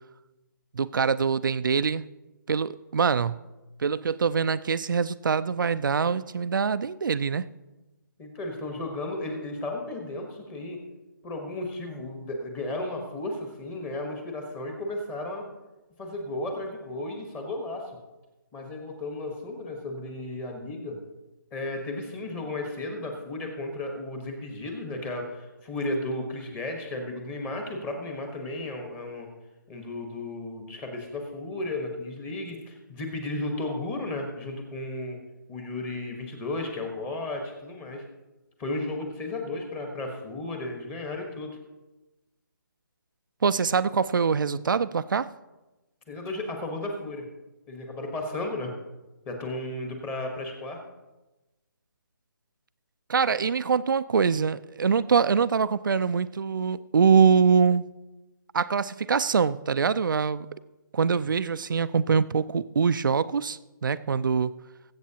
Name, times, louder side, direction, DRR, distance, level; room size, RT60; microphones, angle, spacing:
voice 1, 0.7-2.0 2.5-3.4 3.8-7.5 43.4-45.3 53.1-57.9 58.5-60.5 60.9-64.5, right 6 dB, 70° right, 15 dB, 0.5 m, -24 dB
voice 2, 8.2-10.8 11.2-15.5 16.0-17.9 18.5-21.0 21.5-29.3 29.7-35.2 35.5-38.0 38.6-41.6 46.1-47.3 47.7-48.7 49.2-50.8, left 2 dB, 15° left, 3 dB, 1.3 m, -34 dB
21.0 x 8.1 x 2.9 m, 1.1 s
hypercardioid pair, 160°, 11 cm